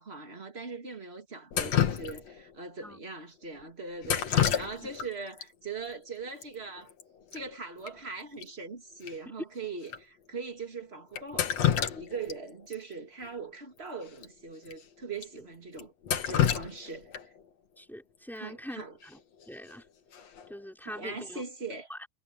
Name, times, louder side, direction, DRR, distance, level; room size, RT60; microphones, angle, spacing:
voice 1, 0.0-6.9 7.3-15.9 16.2-17.1 18.3-19.0 20.8-21.9, right 4 dB, 25° right, 1.3 m, -41 dB
Drip, 1.5-2.5 4.0-5.1 5.4-5.5 6.4-6.5 6.8-7.0 7.3-7.4 7.9-8.0 8.4-8.5 9.1-9.2 9.9-10.0 11.1-12.4 12.7-12.8 14.1-14.2 14.7-14.8 15.2-15.3 15.8-17.4 19.4-19.7 20.1-20.5, left 10 dB, 50° left, 2.3 m, -29 dB
voice 2, 17.8-19.2 19.5-19.8 20.5-21.4 21.9-22.1, equal, ahead, 3.8 m, -43 dB
omnidirectional pair, 5.1 m